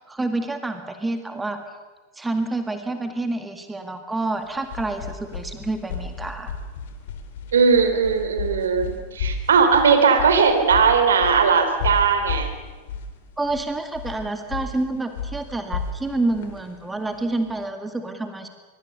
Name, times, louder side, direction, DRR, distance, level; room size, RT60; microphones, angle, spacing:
voice 1, 0.1-1.6 2.2-6.5 13.4-18.5, right 2 dB, 10° right, 7 dB, 2.0 m, -28 dB
sound 1, 4.4-17.6, left 5 dB, 55° left, 3.0 m, -33 dB
voice 2, 7.5-12.5, right 5 dB, 65° right, 7 dB, 3.4 m, -18 dB
24.5 x 23.0 x 6.8 m, 1.3 s
figure-of-eight pair, 90°, 0 cm